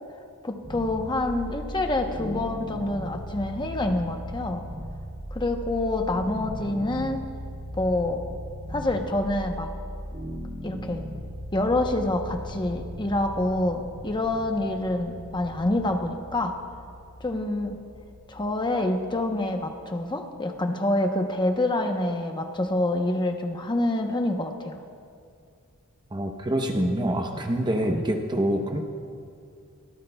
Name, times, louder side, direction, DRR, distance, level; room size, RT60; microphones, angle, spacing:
voice 1, 0.4-4.6 5.3-7.2 7.7-8.2 8.7-9.7 10.6-11.0 11.5-16.6 17.2-17.8 18.3-24.8 27.3-27.4, left 1 dB, 20° left, 4 dB, 0.8 m, -27 dB
sound 1, 0.6-19.6, equal, 50° right, 2.1 m, -38 dB
voice 2, 26.1-28.8, right 1 dB, 20° right, 4 dB, 0.8 m, -26 dB
24.0 x 14.0 x 2.3 m, 2.4 s
head